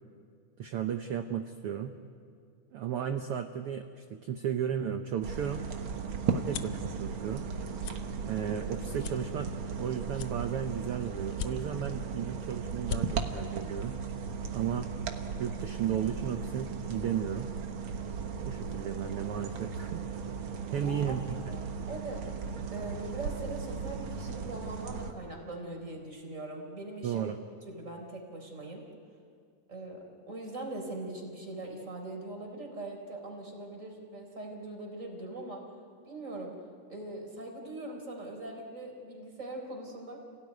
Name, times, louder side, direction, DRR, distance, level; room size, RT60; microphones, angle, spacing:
voice 1, 0.6-2.0 2.7-5.7 6.2-7.5 8.2-14.0 14.5-14.9 15.4-17.5 18.4-20.1 20.7-21.4 27.0-27.4, right 8 dB, 75° right, 7 dB, 1.3 m, -34 dB
sound 1, 5.2-25.1, right 5 dB, 55° right, 1.7 m, -36 dB
sound 2, 6.3-6.8 7.3-7.5 7.8-8.0 8.5-8.6 9.0-9.8 10.1-10.8 11.3-11.9 12.4-12.5 12.7-13.0, left 8 dB, 70° left, 1.5 m, -39 dB
voice 2, 20.8-21.2 21.5-21.6 21.9-22.3 22.7-27.3 27.7-28.8 29.7-35.6 36.1-36.6 36.9-40.2, right 2 dB, 20° right, 1 dB, 4.1 m, -41 dB
29.0 x 17.5 x 9.4 m, 2.3 s
omnidirectional pair, 3.7 m